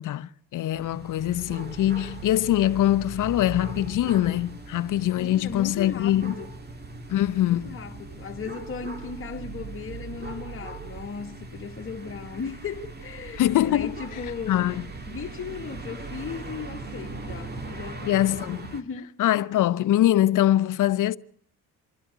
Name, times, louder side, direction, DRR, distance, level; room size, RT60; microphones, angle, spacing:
voice 1, 0.0-6.3 7.1-7.7 13.4-14.0 14.5-14.8 18.1-18.7 19.2-21.2, left 13 dB, 60° left, 0.8 m, -23 dB
sound 1, 0.7-18.8, right 3 dB, 25° right, 2.3 m, -39 dB
voice 2, 5.2-6.5 7.5-14.6 15.1-18.3 18.7-19.1, left 5 dB, 35° left, 2.0 m, -37 dB
26.5 x 12.0 x 9.4 m
cardioid pair, 95°, 35 cm